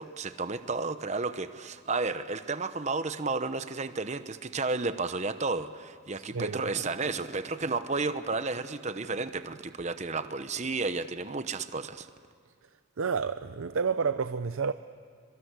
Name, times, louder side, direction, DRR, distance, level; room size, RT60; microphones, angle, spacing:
voice 1, 0.0-12.1, right 3 dB, 30° right, 11 dB, 0.9 m, -32 dB
voice 2, 13.0-14.7, right 5 dB, 75° right, 11 dB, 0.6 m, -29 dB
26.0 x 23.5 x 8.2 m, 2.4 s
head